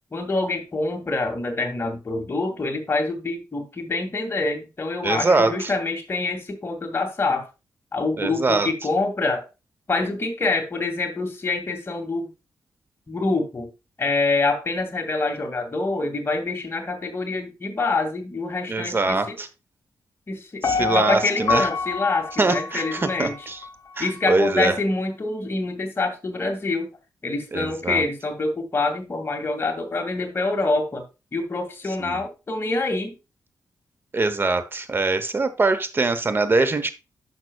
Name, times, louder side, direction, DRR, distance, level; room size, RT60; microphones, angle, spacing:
voice 1, 0.1-7.5 7.9-9.5 9.9-12.3 13.1-13.7 14.0-19.4 20.3-23.5 24.0-26.9 27.2-31.0 31.3-33.2, left 3 dB, 35° left, 2.3 m, -26 dB
voice 2, 5.0-5.7 8.2-8.7 18.7-19.5 20.6-21.7 22.4-23.6 24.0-24.8 27.5-28.0 32.0-32.2 34.1-36.9, right 3 dB, 30° right, 1.0 m, -23 dB
Piano, 20.6-23.7 24.2-24.3, left 4 dB, 55° left, 0.8 m, -27 dB
11.0 x 5.9 x 2.3 m
cardioid pair, 95°, 7 cm